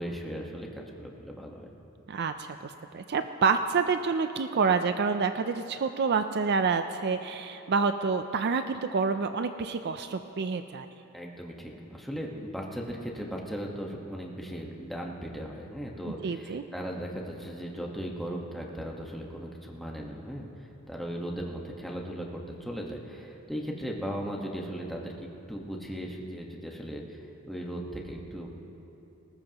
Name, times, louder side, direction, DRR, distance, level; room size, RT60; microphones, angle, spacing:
voice 1, 0.0-1.7 11.1-28.6, equal, ahead, -1 dB, 1.3 m, -37 dB
voice 2, 2.1-10.9 16.2-16.6, right 5 dB, 50° right, 9 dB, 0.4 m, -28 dB
20.0 x 19.0 x 3.0 m, 3.0 s
head